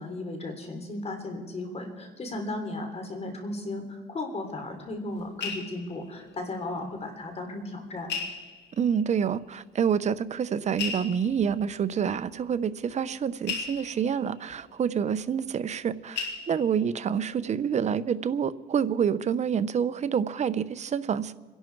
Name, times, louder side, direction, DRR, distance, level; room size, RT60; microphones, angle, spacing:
voice 1, 0.0-8.1, left 2 dB, 35° left, 5 dB, 3.2 m, -35 dB
sound 1, 4.7-7.0 7.3-7.4 8.1-9.0 9.9-10.0 10.7-15.9 16.1-17.1 17.5-17.8 18.1-18.2, left 5 dB, 70° left, 2.3 m, -38 dB
voice 2, 8.8-21.3, right 7 dB, 40° right, 14 dB, 0.7 m, -27 dB
27.5 x 11.0 x 4.6 m, 1.3 s
cardioid pair, 100°, 18 cm